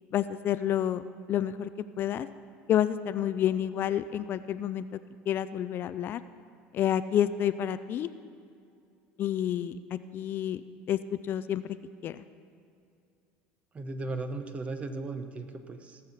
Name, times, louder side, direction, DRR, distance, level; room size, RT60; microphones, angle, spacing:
voice 1, 0.1-1.7 2.0-2.3 2.7-4.9 5.3-6.2 6.7-8.1 9.2-10.6 10.9-11.8 12.0-12.2, left 10 dB, 50° left, 13 dB, 0.4 m, -29 dB
voice 2, 13.7-16.0, right 3 dB, 25° right, 8 dB, 1.0 m, -36 dB
17.5 x 6.5 x 5.8 m, 2.5 s
supercardioid pair, 105°, 5 cm